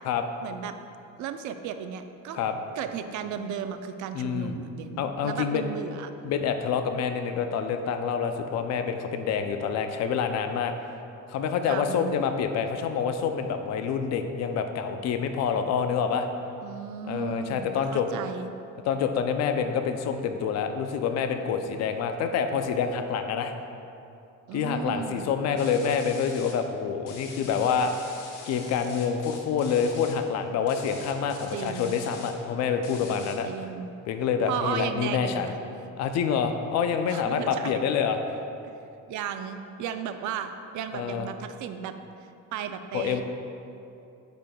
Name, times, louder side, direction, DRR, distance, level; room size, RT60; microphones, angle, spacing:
voice 1, 0.4-0.7 1.2-2.5 2.7-6.1 11.7-12.2 16.6-18.5 24.5-25.3 31.5-32.0 33.5-33.9 34.5-35.6 37.1-37.8 38.6-38.7 39.1-41.9 42.5-43.2, right 8 dB, 60° right, 8 dB, 0.4 m, -35 dB
voice 2, 4.1-4.5 5.0-5.6 6.2-10.7 11.3-16.3 17.1-18.1 18.9-23.5 24.5-28.1 28.5-33.5 34.1-35.5 36.0-38.2 40.9-41.3 42.9-43.2, left 6 dB, 55° left, 7 dB, 0.4 m, -27 dB
sound 1, 25.6-26.5 27.1-30.1 30.7-32.3 32.8-33.4, left 4 dB, 70° left, 1.0 m, -45 dB
8.3 x 5.9 x 2.2 m, 2.7 s
cardioid pair, 155°, 33 cm